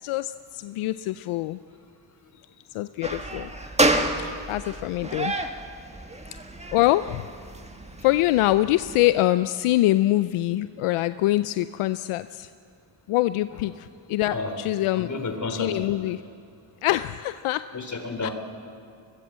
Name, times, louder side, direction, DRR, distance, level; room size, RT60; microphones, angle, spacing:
voice 1, 0.0-1.6 2.7-3.5 4.2-5.4 6.7-7.3 8.0-12.5 13.1-15.1 15.5-16.2 16.8-17.6 18.2-18.3, left 16 dB, 80° left, 13 dB, 0.6 m, -24 dB
sound 1, 3.0-9.1, right 1 dB, 15° right, 1.7 m, -29 dB
voice 2, 15.0-15.9 17.7-18.3, left 3 dB, 35° left, 5 dB, 3.7 m, -31 dB
22.5 x 18.0 x 7.5 m, 2.4 s
cardioid pair, 70°, 50 cm